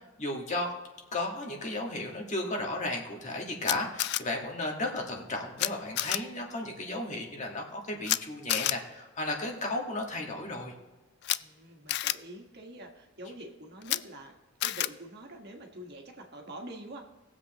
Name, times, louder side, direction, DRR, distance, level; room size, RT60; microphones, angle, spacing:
voice 1, 0.2-0.7 1.1-10.7, left 2 dB, 40° left, 1 dB, 1.6 m, -34 dB
Camera, 3.6-4.2 5.6-5.7 6.0-6.2 8.0-8.2 8.5-8.7 11.2-11.4 11.9-12.1 13.8-14.0 14.6-14.9, left 14 dB, 60° left, 0.3 m, -28 dB
voice 2, 11.4-14.3 14.6-17.0, right 1 dB, 55° right, 2 dB, 1.5 m, -46 dB
19.5 x 7.5 x 3.0 m, 1.2 s
head